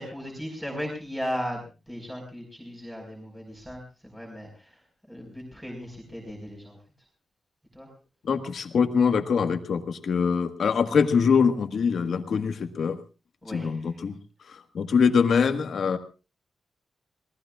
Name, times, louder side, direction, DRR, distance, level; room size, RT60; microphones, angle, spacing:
voice 1, 0.0-4.7 5.1-6.8 7.7-7.9 13.4-14.0, equal, 5° right, 0 dB, 5.1 m, -36 dB
voice 2, 8.2-13.0 13.5-14.2 14.5-16.0, left 6 dB, 70° left, 7 dB, 1.6 m, -23 dB
27.0 x 19.0 x 2.4 m, 0.32 s
wide cardioid pair, 125°, 0 cm